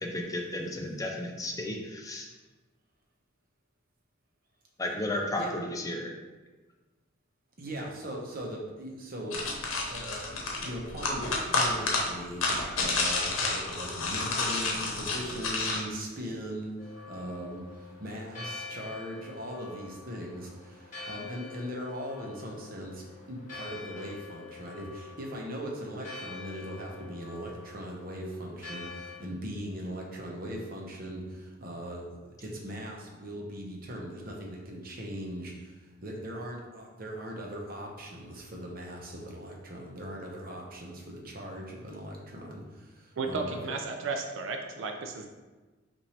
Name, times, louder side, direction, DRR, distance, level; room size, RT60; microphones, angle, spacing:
voice 1, 0.0-2.3 4.8-6.1, left 1 dB, 15° left, 1 dB, 0.4 m, -33 dB
voice 2, 7.6-9.6 9.9-23.0 23.3-43.8, equal, 45° right, -1 dB, 0.8 m, -39 dB
sound 1, 9.3-15.8, left 3 dB, 90° left, 0.9 m, -30 dB
Church bell, 16.8-29.2, left 3 dB, 40° left, 1.2 m, -46 dB
voice 3, 43.2-45.3, right 4 dB, 65° right, 4 dB, 0.4 m, -34 dB
5.7 x 2.6 x 3.2 m, 1.3 s
head